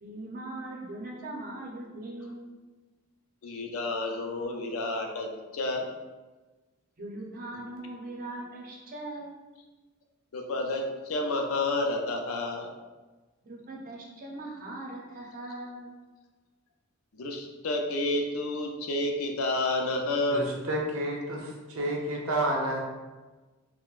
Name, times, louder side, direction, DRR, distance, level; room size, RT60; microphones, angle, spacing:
voice 1, 0.0-2.4 7.0-9.3 13.4-15.9, right 2 dB, 40° right, -2 dB, 0.6 m, -40 dB
voice 2, 3.4-5.9 10.3-12.7 17.1-20.4, left 2 dB, 85° left, 2 dB, 0.5 m, -30 dB
voice 3, 20.3-22.8, right 1 dB, 80° right, -2 dB, 0.7 m, -30 dB
3.7 x 2.0 x 2.4 m, 1.2 s
head